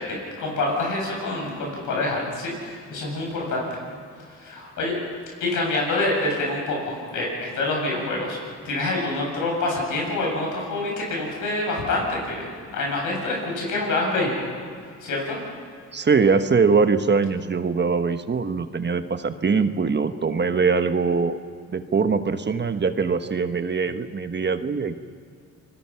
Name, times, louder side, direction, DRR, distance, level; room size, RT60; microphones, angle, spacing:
voice 1, 0.0-3.6 4.4-5.0 5.4-8.4 8.6-12.5 12.7-14.4 15.0-15.4, left 2 dB, 85° left, -1 dB, 7.9 m, -26 dB
voice 2, 15.9-21.4 21.7-25.0, right 5 dB, 35° right, 9 dB, 1.3 m, -22 dB
29.0 x 20.5 x 5.9 m, 2.2 s
cardioid pair, 75°, 30 cm